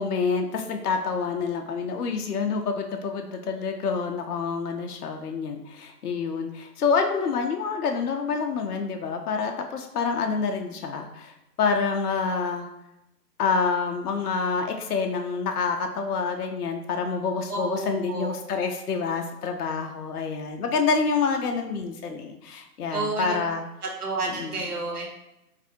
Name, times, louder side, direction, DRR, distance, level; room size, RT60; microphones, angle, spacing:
voice 1, 0.0-12.7 13.4-23.6 24.2-24.6, left 5 dB, 65° left, 3 dB, 0.5 m, -27 dB
voice 2, 17.5-18.3 22.9-23.5 24.0-25.1, right 2 dB, 65° right, -2 dB, 1.1 m, -30 dB
4.1 x 2.6 x 2.6 m, 0.88 s
hypercardioid pair, 165°, 48 cm